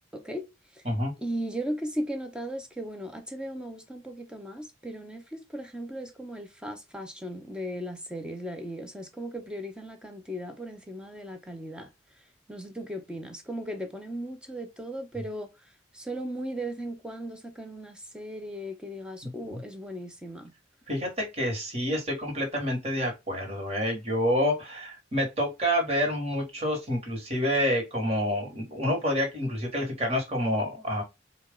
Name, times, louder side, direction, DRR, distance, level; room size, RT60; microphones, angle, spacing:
voice 1, 0.1-0.5 0.7-0.8 1.2-11.9 12.5-15.5 15.9-20.5, right 1 dB, 5° right, 0.7 m, -37 dB
voice 2, 19.2-19.6 20.9-31.0, equal, 30° right, 1.6 m, -28 dB
4.5 x 2.4 x 3.7 m
head